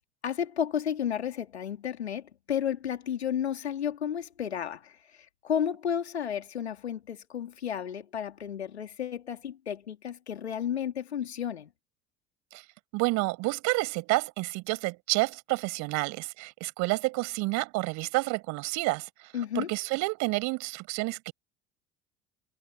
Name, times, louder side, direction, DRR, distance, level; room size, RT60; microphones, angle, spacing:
voice 1, 0.2-4.9 5.4-11.7 19.3-19.7, left 9 dB, 80° left, 3.0 m, -32 dB
voice 2, 12.9-19.1 19.6-21.3, right 24 dB, 60° right, 5.4 m, -29 dB
figure-of-eight pair, 65°, 32 cm